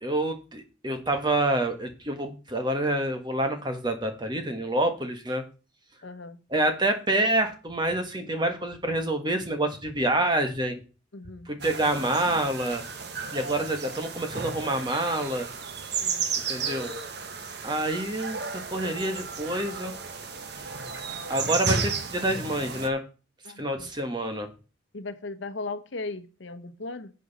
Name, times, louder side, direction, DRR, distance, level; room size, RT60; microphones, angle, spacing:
voice 1, 0.0-5.4 6.5-10.8 11.5-12.8 13.3-15.5 16.5-16.9 17.6-19.9 21.3-23.0 23.6-24.5, right 1 dB, 20° right, 6 dB, 1.3 m, -27 dB
voice 2, 6.0-6.4 11.1-11.5 16.0-16.2 23.4-23.9 24.9-27.1, left 3 dB, 70° left, 11 dB, 0.9 m, -37 dB
sound 1, 11.6-22.9, right 5 dB, 55° right, 1.1 m, -33 dB
11.0 x 7.8 x 4.1 m, 0.34 s
head